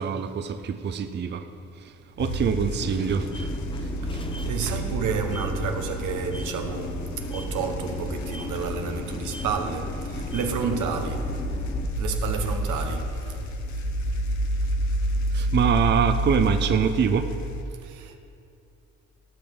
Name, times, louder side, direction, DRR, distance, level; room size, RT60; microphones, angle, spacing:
voice 1, 0.0-1.5 1.8-3.5 3.8-4.2 15.3-17.3, right 7 dB, 35° right, 0.5 m, -25 dB
sound 1, 2.2-17.6, right 1 dB, 70° left, 0.9 m, -30 dB
sound 2, 2.8-11.9, left 3 dB, 15° left, 0.6 m, -36 dB
voice 2, 4.0-11.4 11.9-13.5 17.8-18.2, right 5 dB, 85° right, 1.1 m, -31 dB
17.0 x 6.0 x 3.6 m
cardioid pair, 90°, 30 cm